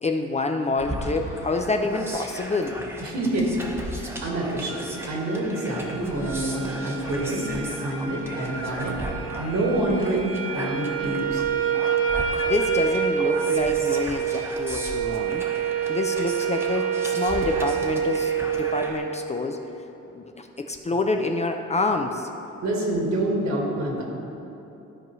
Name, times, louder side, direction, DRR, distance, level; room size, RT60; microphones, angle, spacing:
voice 1, 0.0-2.8 12.4-15.4 15.9-19.6 20.1-22.3, left 3 dB, 25° left, 4 dB, 0.4 m, -27 dB
sound 1, 0.8-19.0, right 1 dB, 10° right, 1.0 m, -37 dB
voice 2, 3.0-3.5 4.0-9.0 9.4-11.4 22.6-24.0, right 1 dB, 65° right, -2 dB, 1.8 m, -27 dB
sound 2, 4.7-18.9, right 8 dB, 50° right, 0.8 m, -27 dB
13.0 x 4.7 x 3.1 m, 2.9 s
cardioid pair, 90°, 30 cm